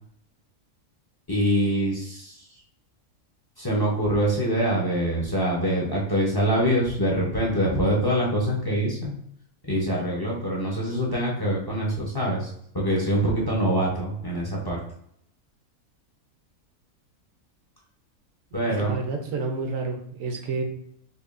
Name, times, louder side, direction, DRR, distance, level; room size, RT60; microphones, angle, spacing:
voice 1, 1.3-2.4 3.6-9.1 9.7-14.8 18.5-18.9, right 1 dB, 25° left, -4 dB, 0.5 m, -24 dB
voice 2, 18.7-20.6, right 3 dB, 70° right, 4 dB, 1.1 m, -29 dB
5.4 x 2.2 x 2.5 m, 0.69 s
omnidirectional pair, 1.4 m